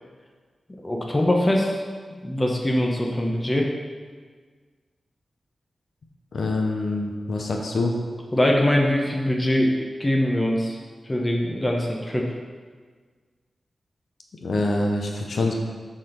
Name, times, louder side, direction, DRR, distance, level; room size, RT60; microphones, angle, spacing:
voice 1, 0.8-1.8 2.1-3.7 8.3-10.8 11.1-12.2, left 1 dB, 15° left, 0 dB, 0.9 m, -22 dB
voice 2, 6.3-8.0 14.4-15.5, left 2 dB, 60° left, 1 dB, 0.9 m, -25 dB
7.4 x 4.1 x 6.6 m, 1.5 s
wide cardioid pair, 150°, 0 cm